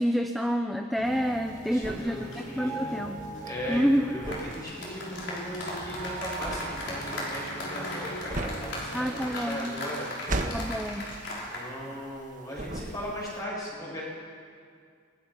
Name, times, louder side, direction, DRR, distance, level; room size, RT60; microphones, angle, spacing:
voice 1, 0.0-3.2 3.7-4.2 8.9-9.7 10.5-11.1, equal, ahead, 5 dB, 0.7 m, -28 dB
sound 1, 1.0-9.5, right 1 dB, 80° left, 7.1 m, -41 dB
sound 2, 1.1-12.2 12.5-13.4, right 1 dB, 40° right, 1.6 m, -37 dB
voice 2, 1.7-3.0 3.4-10.1 10.4-10.5 11.2-14.0, equal, 20° left, -5 dB, 7.8 m, -38 dB
sound 3, 4.2-11.7 11.9-12.2, left 1 dB, 60° left, 5.6 m, -37 dB
28.0 x 20.5 x 5.8 m, 2.2 s
head